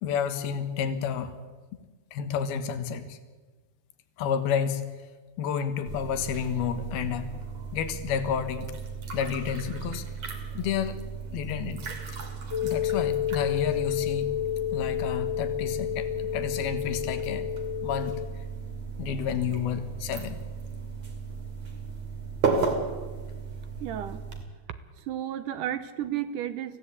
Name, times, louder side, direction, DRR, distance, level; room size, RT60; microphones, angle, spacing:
voice 1, 0.0-1.4 2.1-3.2 4.2-4.9 5.4-7.3 7.7-8.7 9.1-10.0 10.5-11.0 11.3-11.9 12.6-14.3 14.7-17.5 17.8-18.1 19.0-20.4, left 7 dB, 85° left, 10 dB, 3.3 m, -30 dB
sound 1, 5.9-24.4, right 5 dB, 45° right, 3.5 m, -35 dB
sound 2, 12.5-18.3, left 13 dB, 45° left, 1.7 m, -30 dB
voice 2, 23.8-24.2 25.1-26.8, right 11 dB, 70° right, 12 dB, 2.3 m, -32 dB
24.5 x 16.5 x 8.4 m, 1.3 s
omnidirectional pair, 4.3 m